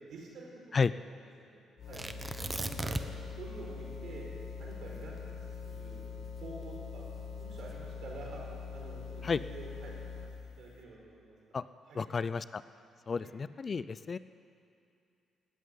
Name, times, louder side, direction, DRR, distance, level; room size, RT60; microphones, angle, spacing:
voice 1, 0.1-0.6 1.1-1.6 1.9-2.0 2.4-3.0 3.4-4.3 4.6-6.0 6.4-7.0 7.4-8.4 8.7-10.0 10.2-11.5 11.9-12.0 13.1-13.3, right 3 dB, 65° right, -2 dB, 5.1 m, -48 dB
sound 1, 1.8-10.5, left 5 dB, 65° left, 1.4 m, -43 dB
Tearing, 1.9-3.3 3.6-3.7 4.2-6.6 7.3-7.8, right 2 dB, 15° right, 0.9 m, -38 dB
voice 2, 11.9-12.6 13.1-14.2, left 5 dB, 40° left, 15 dB, 0.4 m, -32 dB
18.5 x 8.3 x 9.3 m, 2.7 s
cardioid pair, 90°, 0 cm